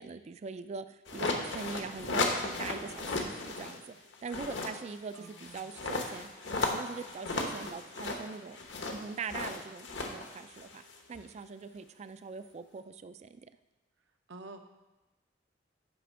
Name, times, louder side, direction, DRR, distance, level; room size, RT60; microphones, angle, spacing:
voice 1, 0.0-3.8 4.2-6.3 6.6-10.8 11.1-13.5, right 5 dB, 35° right, 12 dB, 0.3 m, -42 dB
sound 1, 1.1-3.8 4.1-11.2, left 2 dB, 70° left, 1.0 m, -35 dB
voice 2, 5.1-5.7 14.3-14.6, right 2 dB, 75° right, 6 dB, 0.7 m, -48 dB
10.0 x 3.4 x 6.1 m, 1.1 s
head